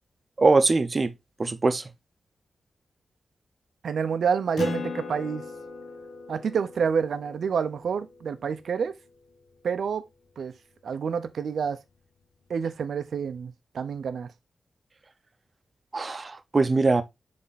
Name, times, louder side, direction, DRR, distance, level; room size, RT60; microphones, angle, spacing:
voice 1, 0.4-1.1 1.4-1.8 15.9-17.0, right 3 dB, 35° right, 0.7 m, -22 dB
voice 2, 3.8-5.4 6.3-8.9 9.6-10.0 10.4-10.5 10.8-11.8 12.5-14.3, right 6 dB, 85° right, 0.6 m, -28 dB
Acoustic guitar, 4.6-9.5, left 4 dB, 65° left, 0.9 m, -38 dB
7.5 x 3.5 x 4.0 m
wide cardioid pair, 115°, 0 cm